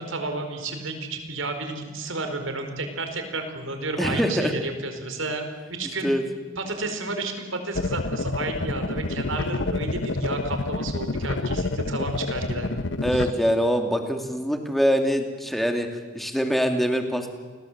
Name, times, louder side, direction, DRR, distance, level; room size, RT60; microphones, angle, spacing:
voice 1, 0.0-6.1 6.6-12.8 13.1-13.3, right 2 dB, 80° right, 6 dB, 4.8 m, -32 dB
voice 2, 4.0-4.5 6.0-6.2 13.0-15.9 16.1-17.3, equal, ahead, 4 dB, 2.7 m, -23 dB
sound 1, 7.8-13.3, left 2 dB, 65° left, 1.1 m, -28 dB
30.0 x 21.0 x 8.1 m, 1.5 s
head